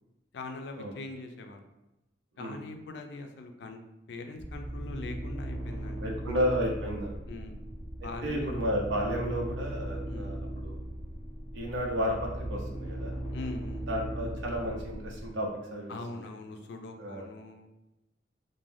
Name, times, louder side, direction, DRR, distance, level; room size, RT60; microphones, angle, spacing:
voice 1, 0.3-1.6 2.4-3.8 4.1-6.4 7.3-7.6 8.0-8.7 10.1-10.4 13.3-13.9 15.9-17.7, left 3 dB, 70° left, 5 dB, 0.3 m, -42 dB
sound 1, 4.4-15.3, right 1 dB, 25° right, 0.5 m, -38 dB
voice 2, 6.0-7.2 8.0-10.8 11.5-13.1 13.9-16.3 17.0-17.3, equal, 85° right, 0 dB, 0.5 m, -32 dB
2.5 x 2.1 x 3.2 m, 0.97 s
head